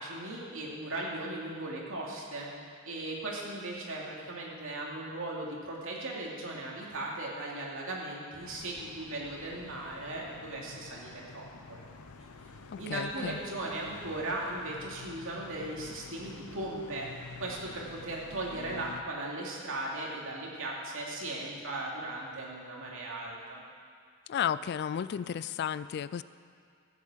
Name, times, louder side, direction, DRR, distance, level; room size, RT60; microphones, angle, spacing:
voice 1, 0.0-2.5 2.8-11.8 12.2-12.3 12.8-17.1 17.4-23.6, right 2 dB, 65° right, -3 dB, 2.7 m, -37 dB
sound 1, 8.4-19.0, left 3 dB, 90° left, 0.8 m, -49 dB
voice 2, 12.7-13.4 24.3-26.2, left 8 dB, 50° left, 16 dB, 0.3 m, -33 dB
15.0 x 8.4 x 7.4 m, 2.3 s
head